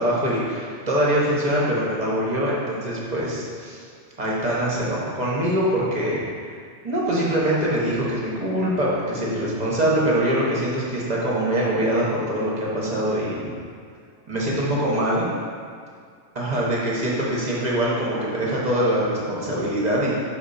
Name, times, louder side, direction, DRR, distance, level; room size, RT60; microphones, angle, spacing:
voice 1, 0.0-3.8 4.2-6.2 6.8-13.4 14.3-15.3 16.3-20.1, right 1 dB, 40° right, -5 dB, 1.2 m, -23 dB
4.6 x 3.9 x 5.5 m, 2.2 s
omnidirectional pair, 1.2 m